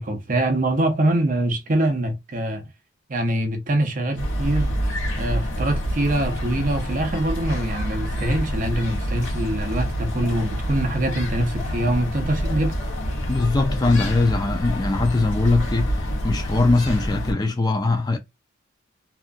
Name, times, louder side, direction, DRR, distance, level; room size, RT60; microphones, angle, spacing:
voice 1, 0.0-2.7 3.1-4.7 5.2-12.8, right 1 dB, 40° right, 0.6 m, -24 dB
sound 1, 4.2-17.3, equal, 80° left, 1.3 m, -27 dB
voice 2, 13.3-18.2, left 3 dB, 20° left, 0.4 m, -21 dB
2.7 x 2.4 x 2.5 m
head